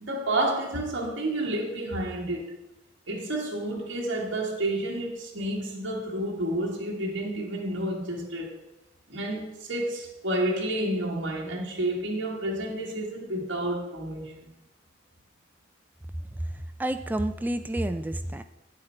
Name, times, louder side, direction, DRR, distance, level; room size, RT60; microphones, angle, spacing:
voice 1, 0.0-2.5 3.1-8.5 9.1-14.3, right 1 dB, 70° right, -4 dB, 1.5 m, -30 dB
voice 2, 16.8-18.4, right 1 dB, 10° right, 9 dB, 0.4 m, -29 dB
9.5 x 7.8 x 4.4 m, 0.93 s
head